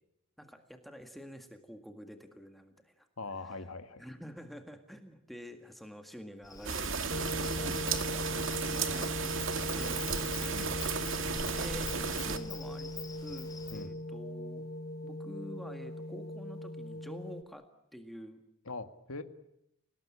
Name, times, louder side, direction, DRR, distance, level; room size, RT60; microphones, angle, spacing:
voice 1, 0.4-3.1 3.4-3.6 4.0-8.3 8.7-9.3 9.8-11.0 11.5-12.9 13.2-14.7 15.0-17.6 17.9-18.4, equal, ahead, 5 dB, 1.8 m, -48 dB
voice 2, 3.2-4.0 7.3-8.0 10.5-10.7 13.7-13.9 18.7-19.2, left 3 dB, 85° left, 8 dB, 2.0 m, -42 dB
Insect, 6.4-13.8, left 5 dB, 20° left, 4.9 m, -46 dB
sound 1, 6.6-12.4, right 5 dB, 65° right, 2.2 m, -34 dB
sound 2, 7.1-17.4, left 1 dB, 45° left, 1.0 m, -40 dB
29.0 x 19.0 x 8.7 m, 0.82 s
head